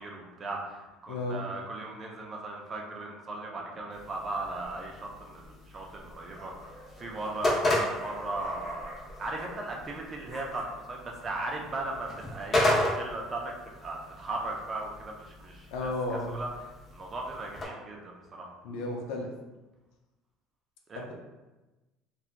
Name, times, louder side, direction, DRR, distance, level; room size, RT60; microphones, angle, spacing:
voice 1, 0.0-8.9 9.2-13.5 13.8-15.9 16.3-16.5 16.9-18.5 20.9-21.1, right 2 dB, 25° right, -1 dB, 0.5 m, -37 dB
voice 2, 1.1-1.4 15.7-16.4 18.6-19.3 20.9-21.1, left 2 dB, 85° left, 0 dB, 0.5 m, -33 dB
sound 1, 3.9-17.7, left 1 dB, 25° left, 0.8 m, -34 dB
sound 2, 4.7-5.1 6.0-9.9 10.1-10.6, equal, 5° right, 0.9 m, -47 dB
2.9 x 2.3 x 2.4 m, 1.1 s
cardioid pair, 145°, 0 cm